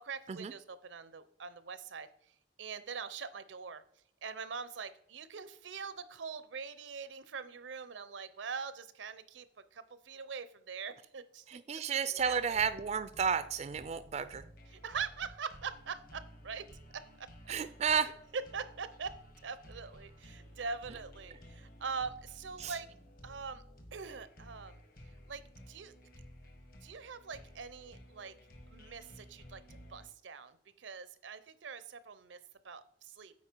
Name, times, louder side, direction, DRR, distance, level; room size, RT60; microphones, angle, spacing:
voice 1, 0.0-2.1 2.6-3.8 4.2-9.5 9.7-11.4 12.0-12.6 14.7-16.7 16.9-17.5 18.3-19.2 19.4-22.9 23.2-23.6 23.9-24.8 25.3-25.9 26.8-28.3 28.7-33.3, right 5 dB, 85° right, 14 dB, 0.6 m, -43 dB
voice 2, 11.5-14.4 17.5-18.1 22.6-22.7, right 6 dB, 35° right, 13 dB, 0.3 m, -32 dB
sound 1, 12.2-30.1, equal, 50° left, 1.4 m, -55 dB
8.5 x 4.8 x 4.5 m, 0.69 s
head